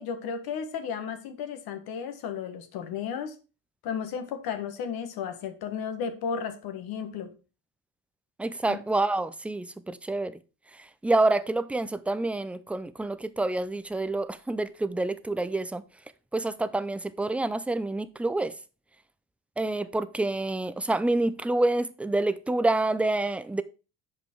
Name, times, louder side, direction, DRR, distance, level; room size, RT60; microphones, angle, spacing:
voice 1, 0.0-3.4 3.8-7.3 8.6-8.8, left 7 dB, 65° left, 1.5 m, -34 dB
voice 2, 8.4-10.4 11.0-15.8 16.3-18.5 19.6-23.6, right 2 dB, 5° right, 0.4 m, -27 dB
7.5 x 5.4 x 4.5 m
supercardioid pair, 100°, 39 cm